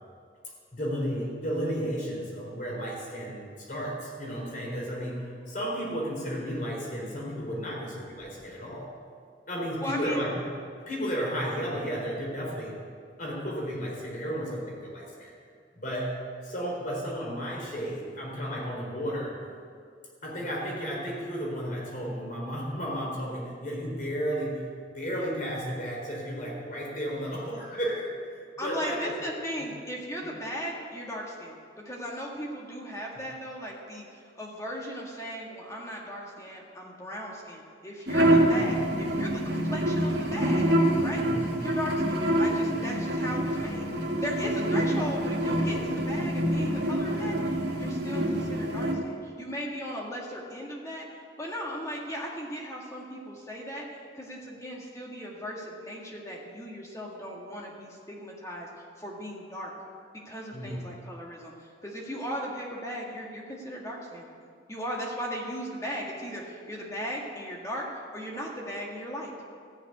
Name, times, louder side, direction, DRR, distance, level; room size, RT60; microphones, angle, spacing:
voice 1, 0.7-8.9 9.5-10.4 10.9-12.8 13.2-15.3 15.8-19.4 20.2-24.7 24.9-29.1 30.2-30.3 41.1-41.6 60.5-60.8, equal, 45° left, -3 dB, 4.2 m, -33 dB
voice 2, 9.8-10.2 28.6-40.7 41.0-41.2 41.6-43.9 44.2-58.7 59.0-59.7 60.3-64.3 64.7-67.9 68.1-69.3, equal, 15° left, -2 dB, 1.8 m, -37 dB
sound 1, 38.1-48.9, right 1 dB, 60° right, 2.0 m, -26 dB
14.5 x 7.3 x 9.4 m, 2.2 s
head